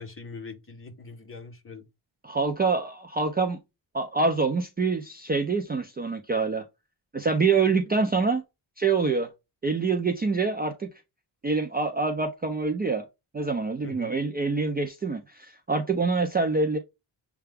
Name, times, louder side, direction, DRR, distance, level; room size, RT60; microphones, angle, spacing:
voice 1, 0.0-1.8 13.8-14.1, left 4 dB, 30° left, 0.9 m, -42 dB
voice 2, 2.2-3.6 3.9-6.6 7.1-8.4 8.8-9.3 9.6-10.9 11.4-13.0 13.3-16.8, right 4 dB, 20° right, 0.4 m, -25 dB
6.7 x 2.3 x 3.4 m
wide cardioid pair, 170°, 44 cm